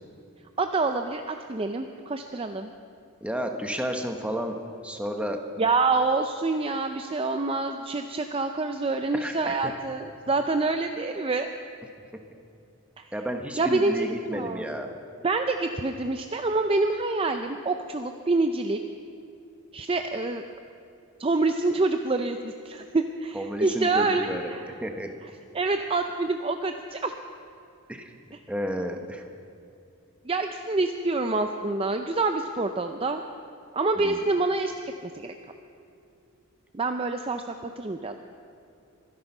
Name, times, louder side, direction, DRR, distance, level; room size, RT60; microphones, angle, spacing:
voice 1, 0.6-2.7 5.6-11.5 13.0-13.1 13.6-14.7 15.2-18.8 19.7-20.4 21.2-24.7 25.5-27.1 30.2-33.2 33.7-34.7 35.0-35.3 36.7-38.2, right 3 dB, 25° right, 6 dB, 0.5 m, -27 dB
voice 2, 3.2-4.6 4.8-5.4 9.1-9.7 13.1-14.9 23.3-24.5 24.8-25.1 27.9-28.1 28.5-29.2 34.0-34.2, equal, 5° right, 4 dB, 1.1 m, -31 dB
24.0 x 10.5 x 5.5 m, 2.6 s
head